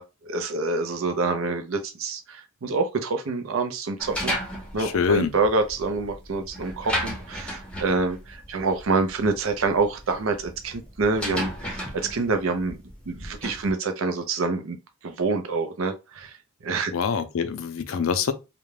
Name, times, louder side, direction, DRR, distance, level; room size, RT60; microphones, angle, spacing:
voice 1, 0.0-4.4 4.7-12.8 13.1-14.8 15.0-16.3 16.6-16.9, right 3 dB, 85° right, 0.5 m, -26 dB
sound 1, 4.0-13.7, equal, 5° left, 0.6 m, -34 dB
voice 2, 4.8-5.3 16.9-18.3, left 6 dB, 85° left, 0.4 m, -24 dB
2.4 x 2.1 x 3.1 m
head